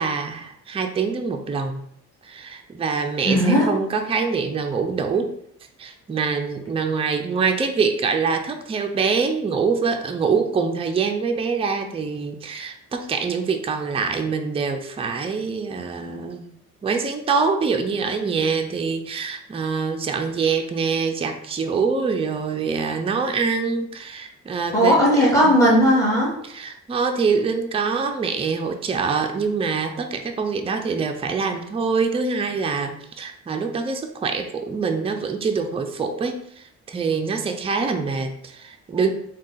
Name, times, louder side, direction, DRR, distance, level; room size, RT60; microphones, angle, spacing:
voice 1, 0.0-1.8 2.2-5.3 5.8-16.5 16.8-25.0 25.4-25.6 26.4-39.1, right 5 dB, 20° right, 4 dB, 0.4 m, -25 dB
voice 2, 3.2-3.7 24.7-26.3, equal, 10° left, -5 dB, 1.5 m, -16 dB
3.6 x 2.3 x 3.9 m, 0.70 s
cardioid pair, 90°, 30 cm